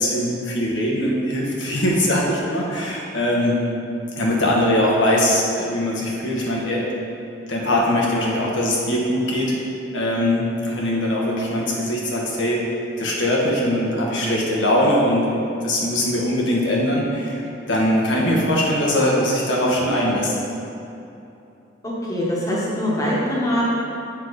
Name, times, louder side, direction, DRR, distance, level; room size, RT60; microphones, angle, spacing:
voice 1, 0.0-3.5 4.2-6.9 7.5-9.6 9.9-12.7 13.0-17.4 17.7-20.3, left 1 dB, 85° left, -3 dB, 1.2 m, -21 dB
voice 2, 21.8-23.6, equal, 20° left, -6 dB, 1.2 m, -23 dB
7.3 x 4.9 x 4.0 m, 2.8 s
head